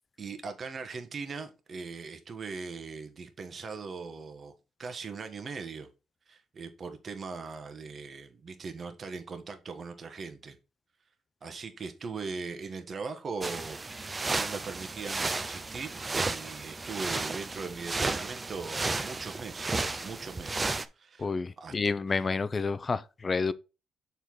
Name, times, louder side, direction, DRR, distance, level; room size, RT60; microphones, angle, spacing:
voice 1, 0.2-4.5 4.8-5.9 6.3-10.6 11.4-21.3 21.6-21.9, right 4 dB, 45° right, 1.3 m, -40 dB
sound 1, 13.4-20.8, right 3 dB, 25° right, 0.7 m, -33 dB
voice 2, 21.2-23.5, left 4 dB, 35° left, 0.5 m, -29 dB
6.7 x 4.8 x 3.8 m
cardioid pair, 75°, 0 cm